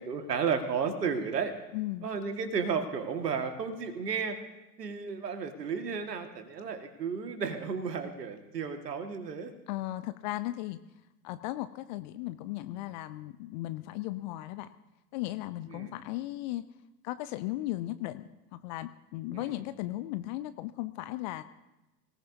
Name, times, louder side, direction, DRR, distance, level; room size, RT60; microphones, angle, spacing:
voice 1, 0.0-1.5 2.0-4.4 4.8-9.5 15.7-15.9 19.3-19.6, right 6 dB, 70° right, 7 dB, 1.9 m, -33 dB
voice 2, 1.7-2.1 9.7-10.8 11.2-14.7 15.1-16.6 17.0-21.4, left 16 dB, 30° left, 13 dB, 0.5 m, -36 dB
25.0 x 17.5 x 2.7 m, 1.0 s
figure-of-eight pair, 85°, 50 cm